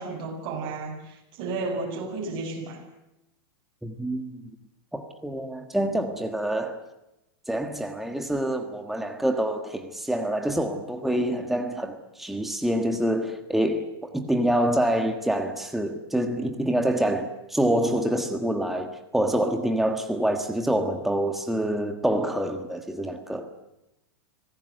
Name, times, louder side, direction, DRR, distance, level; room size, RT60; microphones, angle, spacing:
voice 1, 0.0-2.8, right 3 dB, 40° right, 7.6 m, -33 dB
voice 2, 3.8-4.4 4.9-6.8 7.5-23.5, right 1 dB, ahead, 1.5 m, -26 dB
25.5 x 18.0 x 8.0 m
supercardioid pair, 135°, 13 cm